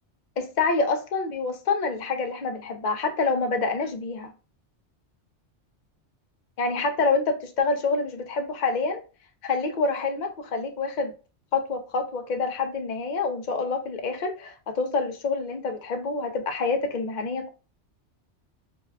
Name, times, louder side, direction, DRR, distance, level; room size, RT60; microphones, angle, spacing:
voice 1, 0.4-4.3 6.6-9.0 9.4-11.1 11.5-17.5, left 4 dB, 45° left, 0.7 m, -27 dB
6.1 x 2.3 x 2.2 m
omnidirectional pair, 1.2 m